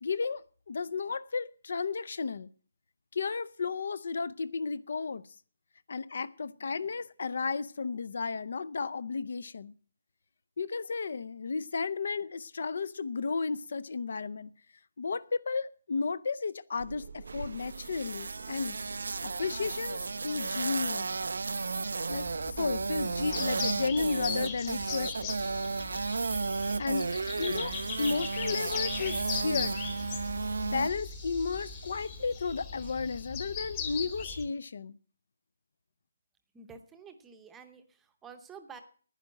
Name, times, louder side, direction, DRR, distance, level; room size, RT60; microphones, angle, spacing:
voice 1, 0.0-2.5 3.1-5.2 5.9-9.7 10.6-14.5 15.0-18.8 19.2-21.1 22.1-25.3 26.8-27.1 27.4-29.8 30.6-35.0, left 4 dB, 50° left, 0.5 m, -33 dB
sound 1, 16.7-34.5, right 4 dB, 55° right, 0.9 m, -49 dB
sound 2, 17.3-30.9, right 4 dB, 75° right, 0.5 m, -34 dB
sound 3, 22.1-34.5, left 6 dB, 15° left, 1.1 m, -39 dB
voice 2, 36.5-38.8, right 6 dB, 5° right, 0.8 m, -50 dB
10.5 x 10.0 x 7.5 m
hypercardioid pair, 175°, 0 cm